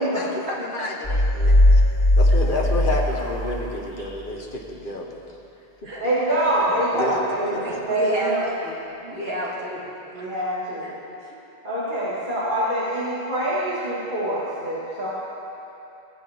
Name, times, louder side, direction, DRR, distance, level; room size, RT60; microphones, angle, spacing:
voice 1, 0.0-1.8 2.2-5.4 6.9-7.1 7.4-7.8, left 1 dB, 60° left, 0 dB, 1.4 m, -30 dB
sound 1, 1.0-3.7, left 1 dB, 30° left, 1.5 m, -18 dB
voice 2, 6.0-8.4 10.1-10.9 11.6-15.1, right 1 dB, 50° right, -10 dB, 2.2 m, -25 dB
voice 3, 7.6-8.8 9.0-9.8 10.2-10.3 10.8-10.9 11.3-11.4, equal, 70° right, -5 dB, 2.2 m, -31 dB
20.5 x 8.1 x 3.6 m, 2.8 s
omnidirectional pair, 1.0 m